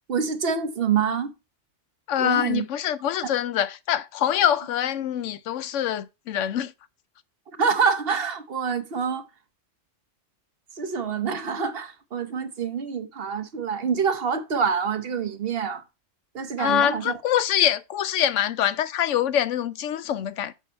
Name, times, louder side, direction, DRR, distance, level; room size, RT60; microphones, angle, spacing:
voice 1, 0.1-1.3 2.2-2.6 7.6-9.3 10.8-15.8 16.3-17.1, right 6 dB, 55° right, 1.0 m, -26 dB
voice 2, 2.1-6.7 16.6-20.5, left 10 dB, 80° left, 0.9 m, -24 dB
6.9 x 5.6 x 4.3 m
omnidirectional pair, 1.3 m